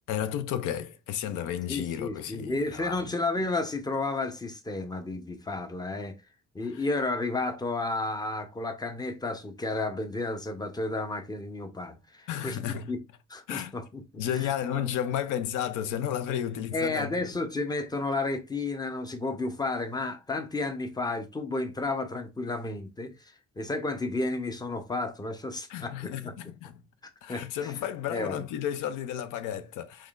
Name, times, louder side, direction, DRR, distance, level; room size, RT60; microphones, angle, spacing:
voice 1, 0.1-3.1 6.7-6.8 12.3-12.9 13.5-13.8 14.2-17.1 25.7-26.8 27.2-30.1, left 10 dB, 90° left, 0.5 m, -32 dB
voice 2, 1.7-6.1 6.5-13.0 13.3-14.0 14.3-14.9 16.7-26.3 27.3-27.7 28.1-28.4, left 2 dB, 15° left, 0.7 m, -32 dB
3.6 x 3.2 x 2.4 m
cardioid pair, 90°, 30 cm